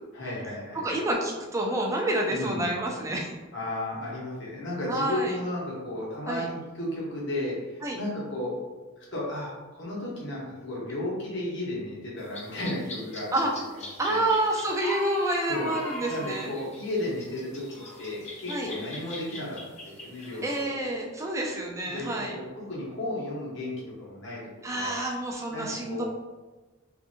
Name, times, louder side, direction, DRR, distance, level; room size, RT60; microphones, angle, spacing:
voice 1, 0.1-1.0 2.3-2.7 3.5-8.6 9.0-13.3 13.8-14.2 15.5-20.4 20.8-20.9 21.9-25.0 25.5-26.0, left 1 dB, 60° left, -5 dB, 1.1 m, -34 dB
voice 2, 0.7-3.3 4.9-5.4 6.3-6.5 7.8-8.0 13.3-13.5 14.0-16.5 18.5-18.7 20.4-22.3 24.6-26.0, right 1 dB, 15° right, 0 dB, 0.4 m, -28 dB
sound 1, 12.2-20.6, left 1 dB, 35° left, 0.7 m, -41 dB
2.6 x 2.5 x 2.7 m, 1.2 s
head